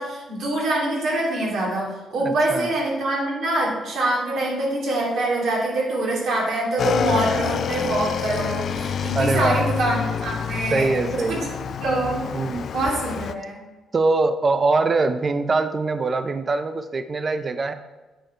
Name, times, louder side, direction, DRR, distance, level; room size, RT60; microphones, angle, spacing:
voice 1, 0.0-11.4 11.8-12.3 12.7-13.6, right 2 dB, 70° right, -3 dB, 2.8 m, -25 dB
voice 2, 2.2-2.7 9.1-9.7 10.7-11.5 12.3-12.7 13.9-17.7, right 3 dB, 35° right, 10 dB, 0.5 m, -23 dB
Motorcycle / Engine, 6.8-13.3, left 7 dB, 60° left, 0.4 m, -27 dB
8.9 x 4.9 x 4.4 m, 1.2 s
cardioid pair, 90°, 0 cm